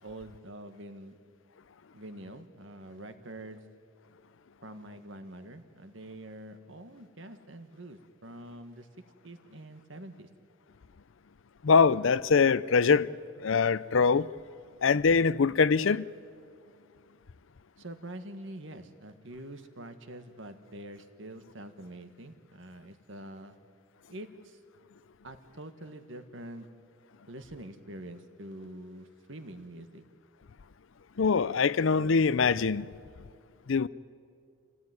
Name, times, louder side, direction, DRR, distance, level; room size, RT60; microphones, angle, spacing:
voice 1, 0.0-1.2 1.9-3.6 4.6-8.9 9.2-10.3 17.8-23.6 24.1-24.6 25.2-26.7 27.3-30.0, right 1 dB, 65° right, 1.6 m, -45 dB
voice 2, 11.6-13.1 13.4-14.3 14.8-16.0 31.2-32.9 33.7-33.9, left 5 dB, 65° left, 0.5 m, -23 dB
27.0 x 17.5 x 9.6 m
head